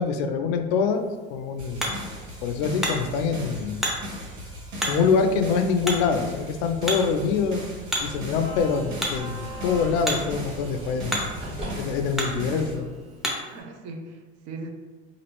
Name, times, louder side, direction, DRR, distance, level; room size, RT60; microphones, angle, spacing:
voice 1, 0.0-2.0 2.4-3.8 4.9-7.6 8.0-11.3 11.8-12.8, left 5 dB, 70° left, 7 dB, 0.5 m, -25 dB
Hammer, 0.9-13.6, equal, ahead, 0.6 m, -34 dB
sound 1, 1.6-12.7, left 1 dB, 75° right, 1.2 m, -38 dB
sound 2, 8.0-13.4, equal, 20° right, 1.1 m, -39 dB
voice 2, 11.3-11.8 12.4-12.9 13.4-14.7, right 3 dB, 50° right, 3 dB, 0.6 m, -40 dB
3.0 x 2.5 x 3.0 m, 1.3 s
supercardioid pair, 110°, 32 cm